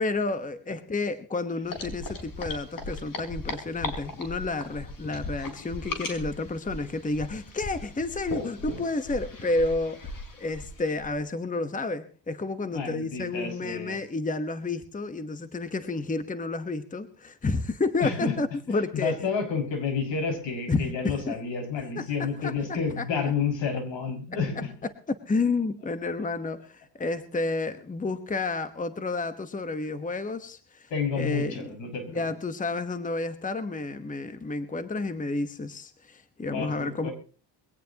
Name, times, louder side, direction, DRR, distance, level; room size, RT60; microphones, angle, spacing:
voice 1, 0.0-19.2 20.7-21.3 22.0-22.5 22.9-23.0 25.1-30.9 31.2-31.7 32.1-37.1, left 3 dB, 20° left, 11 dB, 1.2 m, -30 dB
sound 1, 1.6-11.2, left 2 dB, 50° left, 5.2 m, -38 dB
voice 2, 12.7-14.0 18.0-18.3 18.7-24.7 30.9-32.2 36.5-37.1, left 5 dB, 80° left, 5 dB, 6.0 m, -30 dB
22.0 x 17.5 x 2.9 m, 0.38 s
cardioid pair, 125°, 44 cm